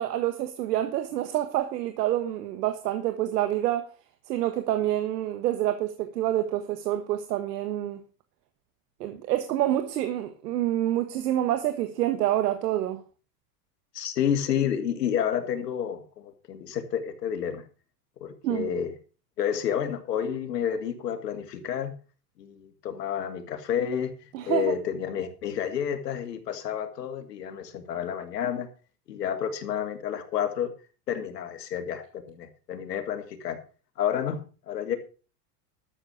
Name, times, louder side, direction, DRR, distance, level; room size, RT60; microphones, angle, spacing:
voice 1, 0.0-3.9 4.3-8.0 9.0-13.0 18.4-18.7 24.3-24.7, right 13 dB, 80° right, 1.5 m, -27 dB
voice 2, 13.9-17.6 18.2-18.9 19.4-21.9 22.4-24.1 24.5-28.7 29.1-30.7 31.1-33.6 34.0-34.4 34.7-35.0, left 9 dB, 90° left, 2.6 m, -30 dB
12.5 x 7.4 x 6.3 m
supercardioid pair, 115°, 47 cm